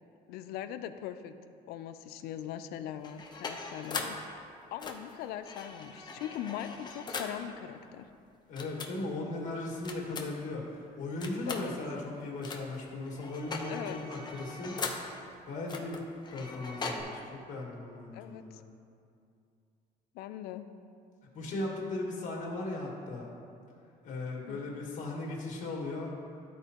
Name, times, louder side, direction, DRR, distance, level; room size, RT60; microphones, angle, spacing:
voice 1, 0.3-1.3 1.7-8.1 11.5-11.8 13.7-14.0 18.1-18.6 20.1-20.7 24.5-24.6, left 11 dB, 85° left, 10 dB, 0.4 m, -41 dB
sound 1, 3.0-4.2 4.8-7.4 8.6-8.9 9.8-10.5 11.2-11.7 12.4-12.8 13.1-15.1 15.7-17.0, left 4 dB, 30° left, 0.7 m, -40 dB
voice 2, 8.5-14.7 15.5-16.0 16.3-18.6 21.3-23.3 24.0-26.1, left 2 dB, 55° left, -2 dB, 1.8 m, -37 dB
12.5 x 4.5 x 2.9 m, 2.4 s
cardioid pair, 125°, 16 cm